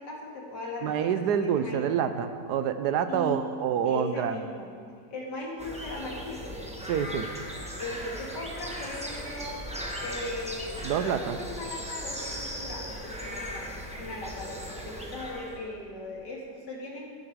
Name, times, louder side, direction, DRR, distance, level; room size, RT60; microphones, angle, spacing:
voice 1, 0.0-1.8 3.1-3.4 3.8-4.7 5.1-6.6 7.8-9.6 10.0-17.1, left 2 dB, 80° left, -2 dB, 2.6 m, -38 dB
voice 2, 0.8-4.4 6.9-7.3 10.8-11.4, right 8 dB, 75° right, 10 dB, 1.2 m, -27 dB
sound 1, 5.6-15.6, equal, 5° right, 1.1 m, -38 dB
13.5 x 9.9 x 4.7 m, 2.1 s
omnidirectional pair, 1.8 m